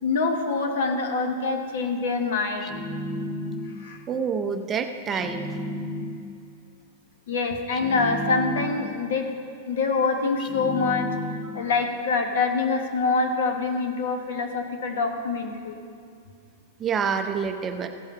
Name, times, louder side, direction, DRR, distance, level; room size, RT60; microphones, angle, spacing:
voice 1, 0.0-2.8 3.8-4.0 7.3-9.3 9.7-11.1 11.5-15.8, left 4 dB, 75° left, 4 dB, 1.4 m, -25 dB
sound 1, 2.6-4.0 5.1-6.4 7.7-9.1 10.4-11.8, left 1 dB, 25° left, 0.6 m, -33 dB
voice 2, 4.1-5.6 9.5-9.6 11.4-11.7 16.8-17.9, right 6 dB, 20° right, 6 dB, 0.6 m, -28 dB
15.5 x 5.5 x 5.6 m, 2.4 s
supercardioid pair, 140°, 0 cm